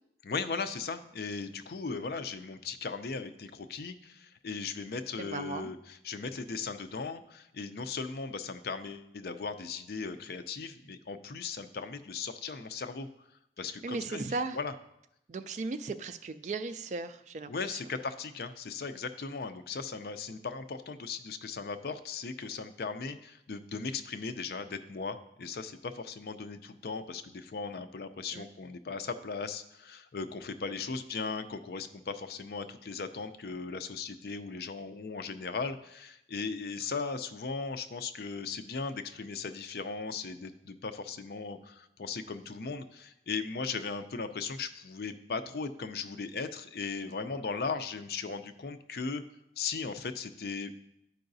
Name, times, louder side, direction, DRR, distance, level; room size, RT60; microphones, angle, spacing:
voice 1, 0.2-13.1 13.6-14.2 14.5-14.7 17.5-49.2 49.6-50.7, left 4 dB, 60° left, 10 dB, 0.4 m, -37 dB
voice 2, 5.2-5.7 13.8-14.6 15.3-17.5 28.3-28.5, right 3 dB, 40° right, 10 dB, 0.3 m, -36 dB
11.5 x 4.7 x 2.6 m, 0.82 s
head